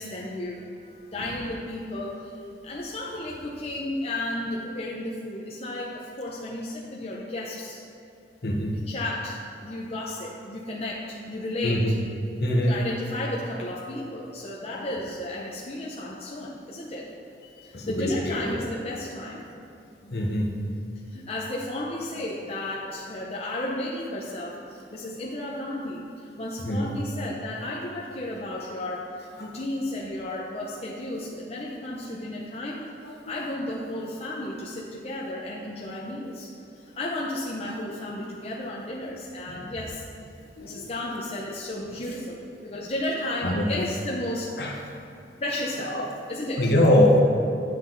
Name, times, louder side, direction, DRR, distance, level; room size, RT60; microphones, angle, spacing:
voice 1, 0.0-2.3 2.6-7.8 8.7-11.9 12.6-17.1 17.6-19.4 21.1-29.1 29.4-32.9 33.1-36.5 36.8-40.0 40.6-44.5 45.4-46.0 46.3-46.7, left 1 dB, 35° left, -4 dB, 0.7 m, -33 dB
voice 2, 11.6-12.0 12.4-12.8 17.7-18.6 20.0-20.5 26.6-26.9 29.4-29.5 33.0-33.3 37.7-37.8 39.5-39.6 40.6-41.0 43.4-43.7 44.6-44.7 45.7-46.1 46.6-47.2, left 1 dB, 60° left, 0 dB, 1.1 m, -24 dB
9.6 x 6.1 x 3.9 m, 2.6 s
head